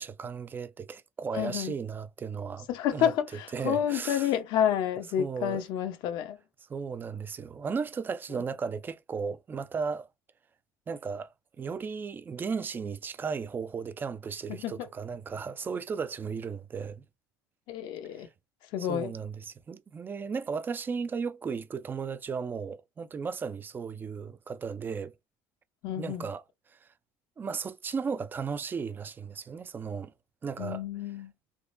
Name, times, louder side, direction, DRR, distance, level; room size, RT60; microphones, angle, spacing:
voice 1, 0.0-2.7 2.9-3.1 3.5-4.3 5.2-5.6 6.7-10.1 10.9-11.3 11.6-17.0 18.8-25.1 26.0-26.4 26.8-26.9 27.4-30.1 30.4-30.8, right 5 dB, 25° right, 0.4 m, -35 dB
voice 2, 1.3-1.7 2.7-6.4 14.5-14.9 17.7-18.3 18.7-19.1 25.8-26.3 30.6-31.3, left 10 dB, 65° left, 0.8 m, -29 dB
3.6 x 2.9 x 2.5 m
supercardioid pair, 110°, 8 cm